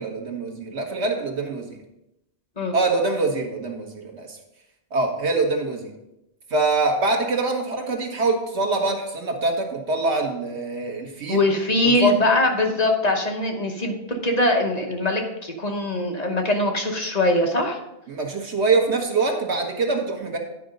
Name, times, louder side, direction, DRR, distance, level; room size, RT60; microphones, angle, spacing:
voice 1, 0.0-1.8 2.7-4.4 4.9-5.9 6.5-11.4 12.0-12.1 18.1-20.4, right 3 dB, 80° right, 2 dB, 1.6 m, -24 dB
voice 2, 11.3-17.8, left 1 dB, 40° left, 2 dB, 1.1 m, -22 dB
9.8 x 5.1 x 5.1 m, 0.89 s
omnidirectional pair, 1.1 m